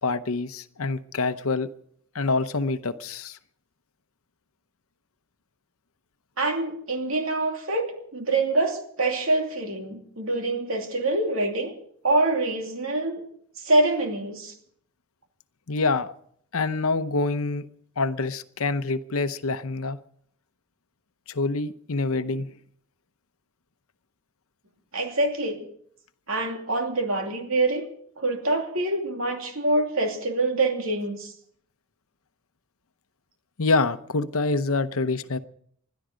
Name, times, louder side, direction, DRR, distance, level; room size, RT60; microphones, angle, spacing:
voice 1, 0.0-1.7 2.1-3.4 15.7-16.1 16.5-17.7 18.0-20.0 21.3-22.6 33.6-35.4, left 3 dB, 75° left, 12 dB, 0.8 m, -26 dB
voice 2, 6.4-11.7 12.0-13.2 13.6-14.5 24.9-25.7 26.3-27.9 28.2-31.3, right 2 dB, 70° right, 3 dB, 2.7 m, -25 dB
21.0 x 12.5 x 5.1 m, 0.64 s
head